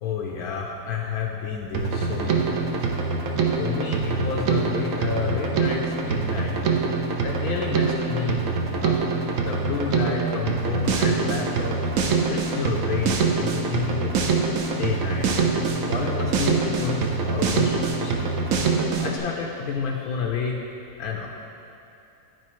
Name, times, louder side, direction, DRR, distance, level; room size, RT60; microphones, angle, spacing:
voice 1, 0.0-2.9 3.6-6.6 7.2-8.4 8.8-9.0 9.4-11.8 12.3-14.1 14.7-15.3 15.7-18.4 19.0-20.6 21.0-21.3, left 6 dB, 80° left, -1 dB, 1.1 m, -30 dB
Drum kit, 1.7-19.2, right 4 dB, 65° right, 1.0 m, -24 dB
11.5 x 4.6 x 3.0 m, 2.7 s
omnidirectional pair, 1.6 m